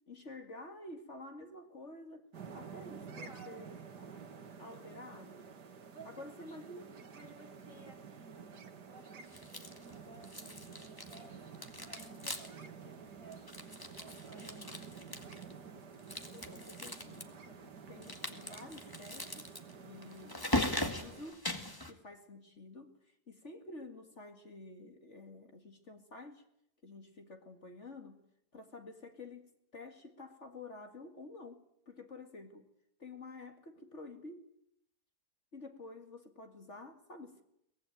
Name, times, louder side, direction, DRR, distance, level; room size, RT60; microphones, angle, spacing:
voice 1, 0.1-2.3 2.5-4.2 4.6-5.5 6.0-6.8 16.3-19.5 19.8-21.4 21.9-26.4 26.8-28.3 28.5-32.7 33.0-34.5 35.5-37.4, left 2 dB, 45° left, 2.4 m, -50 dB
sound 1, 2.3-21.3, right 6 dB, 90° right, 2.3 m, -51 dB
voice 2, 3.0-3.7 5.9-8.5 8.8-14.8, right 3 dB, 50° right, 5.8 m, -57 dB
sound 2, 9.3-9.9 10.2-11.3 11.5-12.7 12.9-13.0 13.3-15.5 16.0-17.2 18.0-21.9, left 1 dB, 15° left, 1.9 m, -39 dB
23.0 x 20.0 x 9.3 m
omnidirectional pair, 1.7 m